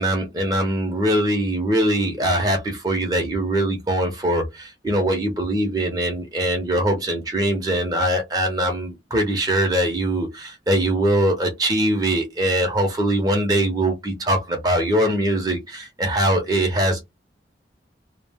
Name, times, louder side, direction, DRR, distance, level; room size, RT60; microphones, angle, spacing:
voice 1, 0.0-17.0, right 1 dB, 20° right, 0.6 m, -22 dB
2.4 x 2.1 x 3.3 m
head